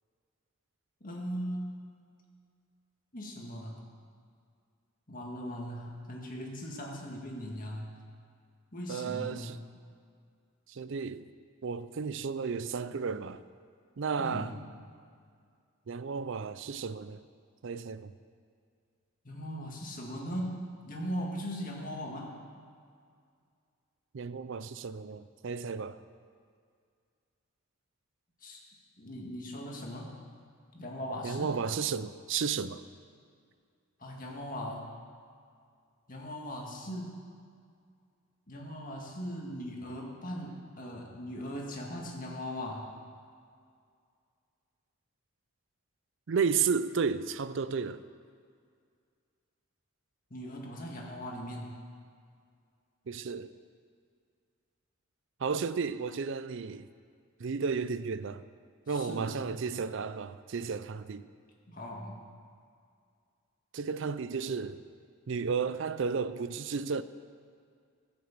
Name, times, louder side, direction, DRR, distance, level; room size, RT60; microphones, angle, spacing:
voice 1, 1.0-1.8 3.1-3.7 5.1-7.9 8.7-9.6 14.2-14.5 19.2-22.4 28.4-28.6 29.0-30.1 30.7-31.5 34.0-34.8 36.1-37.2 38.5-42.9 50.3-51.8 58.9-59.3 61.7-62.2, equal, 40° left, 2.0 m, -39 dB
voice 2, 8.9-9.6 10.7-11.3 11.6-13.4 14.0-14.5 15.9-17.2 17.6-18.1 24.1-26.0 31.2-32.8 46.3-48.0 53.1-53.5 55.4-56.9 57.4-58.5 58.9-61.3 63.7-64.8 65.3-67.0, right 5 dB, 60° right, 0.5 m, -33 dB
16.0 x 6.3 x 7.4 m
head